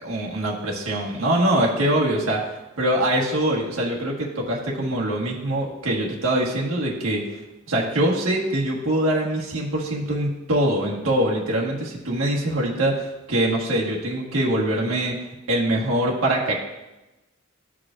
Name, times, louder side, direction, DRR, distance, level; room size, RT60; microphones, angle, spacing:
voice 1, 0.0-2.5 2.8-7.2 7.7-15.2 15.5-16.5, right 1 dB, 90° right, -3 dB, 1.5 m, -23 dB
13.5 x 4.8 x 2.5 m, 1.0 s
head